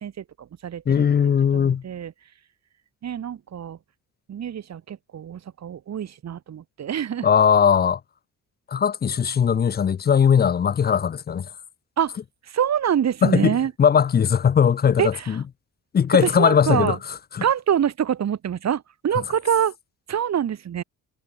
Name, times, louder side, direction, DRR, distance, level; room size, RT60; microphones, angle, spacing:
voice 1, 0.0-1.1 1.5-2.1 3.0-3.8 4.3-7.3 12.0-12.2 12.5-13.7 15.0-15.4 16.1-17.0 17.4-19.7 20.1-20.8, right 9 dB, 50° right, 1.7 m, -25 dB
voice 2, 0.9-1.8 7.2-8.0 8.7-11.5 13.2-15.4 15.9-17.0 17.3-17.4, left 7 dB, 30° left, 0.5 m, -19 dB
cardioid pair, 85°, 34 cm